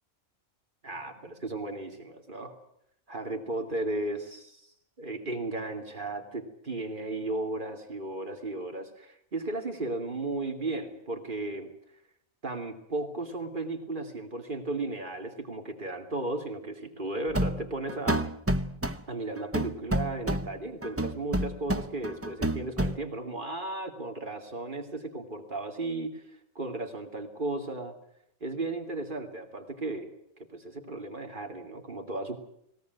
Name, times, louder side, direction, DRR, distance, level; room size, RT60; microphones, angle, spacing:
voice 1, 0.8-2.6 3.1-4.7 5.0-11.7 12.4-18.3 19.1-26.2 26.5-27.9 28.4-30.1 30.4-32.4, right 2 dB, 35° right, 5 dB, 2.9 m, -35 dB
sound 1, 17.3-19.0 19.4-20.6 20.8-23.0, right 1 dB, 15° right, 0.6 m, -29 dB
20.0 x 18.0 x 9.3 m, 0.74 s
omnidirectional pair, 1.4 m